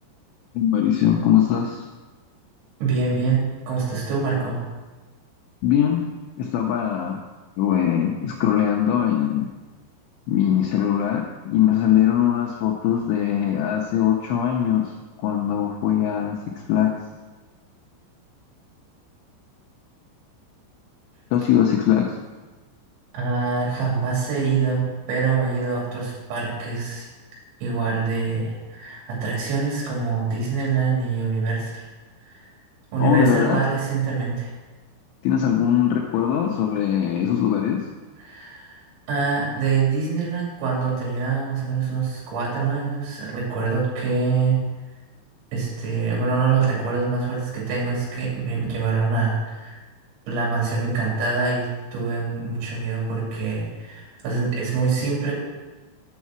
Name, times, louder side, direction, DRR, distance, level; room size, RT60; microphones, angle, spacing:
voice 1, 0.6-1.8 5.6-6.0 6.4-7.2 7.6-9.5 10.3-14.9 15.2-16.4 16.7-16.9 21.3-22.1 33.0-33.6 35.2-37.8, left 10 dB, 90° left, 0 dB, 2.5 m, -21 dB
voice 2, 2.8-4.6 23.1-27.1 27.6-31.8 32.2-32.5 32.9-34.5 38.2-38.8 39.1-44.6 45.5-49.8 50.3-55.3, right 5 dB, 60° right, -4 dB, 4.9 m, -25 dB
8.3 x 6.4 x 6.0 m, 1.2 s
omnidirectional pair, 5.9 m